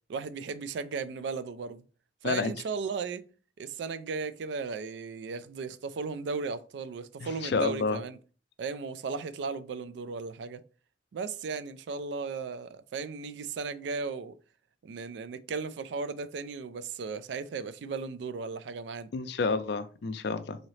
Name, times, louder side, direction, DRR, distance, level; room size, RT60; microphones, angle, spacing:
voice 1, 0.1-1.8 2.2-3.3 3.6-8.2 8.6-10.6 11.1-14.3 14.8-19.1, right 4 dB, 70° right, 0.3 m, -36 dB
voice 2, 7.2-8.0 19.1-20.6, left 4 dB, 65° left, 0.4 m, -29 dB
3.9 x 2.8 x 3.1 m
head